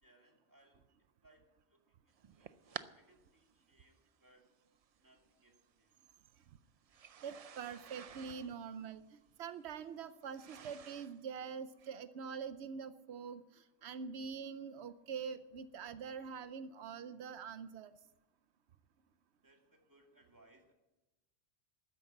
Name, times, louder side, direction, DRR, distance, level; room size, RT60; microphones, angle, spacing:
voice 1, 0.0-0.8 1.2-4.5 5.0-6.0 19.4-20.7, right 1 dB, 20° right, 1 dB, 2.4 m, -68 dB
sound 1, 2.2-2.9 3.9-4.0 5.2-5.3 6.9-11.2, right 7 dB, 50° right, 0.5 m, -51 dB
voice 2, 7.2-18.0, right 6 dB, 85° right, 12 dB, 0.9 m, -45 dB
13.0 x 9.8 x 7.8 m, 1.0 s
omnidirectional pair, 1.1 m